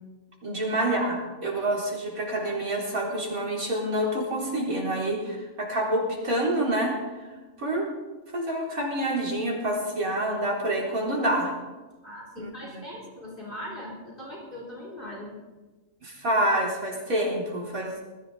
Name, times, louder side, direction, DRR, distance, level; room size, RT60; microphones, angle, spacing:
voice 1, 0.4-7.0 7.6-7.9 8.3-11.5 12.4-12.8 16.0-18.0, right 1 dB, 85° right, -3 dB, 4.4 m, -27 dB
voice 2, 12.0-15.3, left 1 dB, 40° left, -3 dB, 3.8 m, -40 dB
20.5 x 14.5 x 4.0 m, 1.2 s
omnidirectional pair, 1.4 m